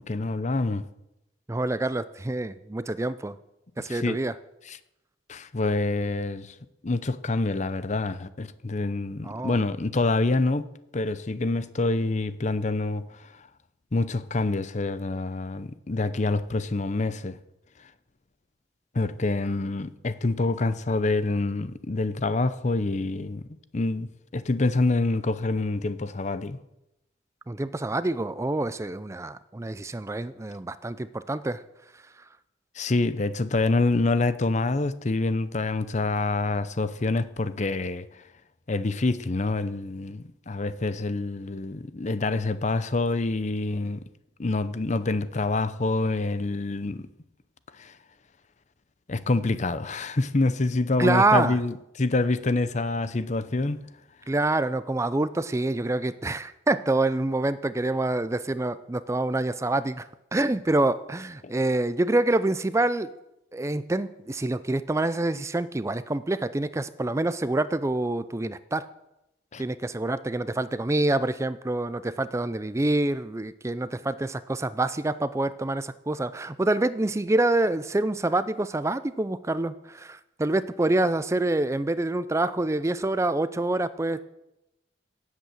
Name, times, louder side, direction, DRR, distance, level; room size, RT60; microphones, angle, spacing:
voice 1, 0.1-0.9 3.9-4.2 4.7-4.8 5.3-6.5 6.8-10.7 10.9-13.3 13.9-17.4 18.9-23.5 23.7-26.6 32.8-38.1 38.7-44.0 44.4-47.1 47.8-47.9 49.1-53.8 61.4-61.5 69.5-69.6, left 2 dB, 40° left, 0.7 m, -26 dB
voice 2, 1.5-3.4 3.8-4.3 9.2-9.6 27.5-31.6 51.0-51.6 54.3-60.0 60.3-63.1 63.5-68.8 69.6-84.2, right 2 dB, 15° right, 0.4 m, -26 dB
17.0 x 8.2 x 7.6 m
head